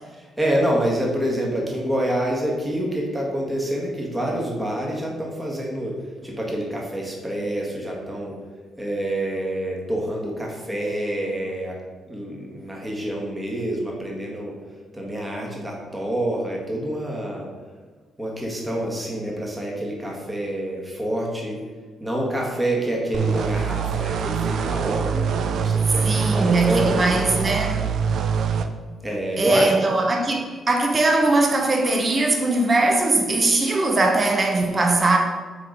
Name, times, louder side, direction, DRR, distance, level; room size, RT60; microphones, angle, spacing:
voice 1, 0.1-6.0 6.2-8.3 8.8-11.7 12.1-14.5 14.9-17.5 18.2-21.6 22.0-27.1 29.0-29.8, right 1 dB, 10° right, 1.7 m, -27 dB
sound 1, 23.1-28.7, right 6 dB, 65° right, 0.5 m, -24 dB
voice 2, 26.0-27.9 29.4-35.2, right 2 dB, 30° right, 1.0 m, -20 dB
7.4 x 4.0 x 5.1 m
cardioid pair, 90°, 0 cm